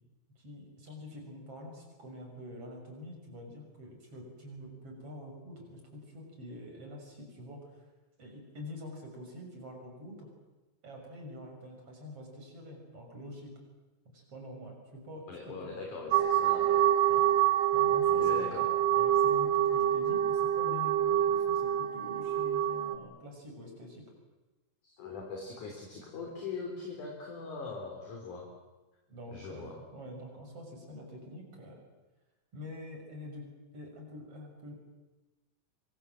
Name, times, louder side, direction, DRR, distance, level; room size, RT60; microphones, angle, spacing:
voice 1, 0.4-7.8 8.2-10.3 10.8-13.5 14.1-15.8 17.1-17.3 17.7-24.0 26.1-26.3 29.1-31.8 32.5-33.5 33.7-34.7, left 1 dB, 30° right, 2 dB, 7.1 m, -46 dB
voice 2, 15.3-16.8 18.1-18.7 24.8-28.4 29.3-29.7, left 4 dB, 40° left, 0 dB, 4.6 m, -41 dB
sound 1, 16.1-23.0, right 11 dB, 70° right, 2.6 m, -26 dB
27.0 x 24.0 x 7.7 m, 1.1 s
omnidirectional pair, 5.8 m